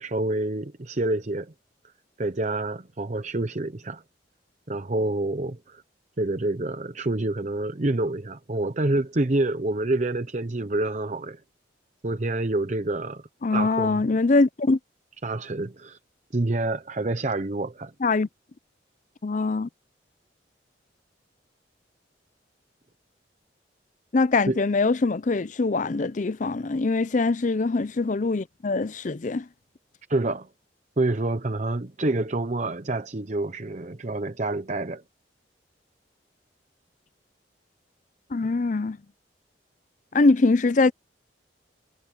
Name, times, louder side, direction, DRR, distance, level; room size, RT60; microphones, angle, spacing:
voice 1, 0.0-1.5 2.2-4.0 4.7-5.8 6.2-11.4 12.0-13.2 13.5-14.1 15.2-16.0 16.3-17.9 24.5-24.6 30.1-30.5 31.0-35.0, right 2 dB, 40° right, 0.8 m, -27 dB
voice 2, 13.4-14.8 18.0-18.3 19.2-19.7 24.1-29.5 38.3-39.0 40.1-40.9, left 3 dB, 45° left, 0.5 m, -23 dB
head